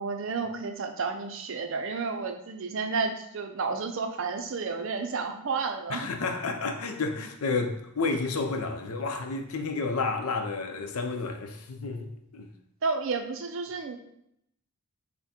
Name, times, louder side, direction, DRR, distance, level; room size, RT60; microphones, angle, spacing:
voice 1, 0.0-6.1 12.8-14.0, right 4 dB, 60° right, 0.5 m, -31 dB
voice 2, 5.9-12.5, left 4 dB, 75° left, 0.6 m, -31 dB
5.7 x 2.2 x 4.3 m
head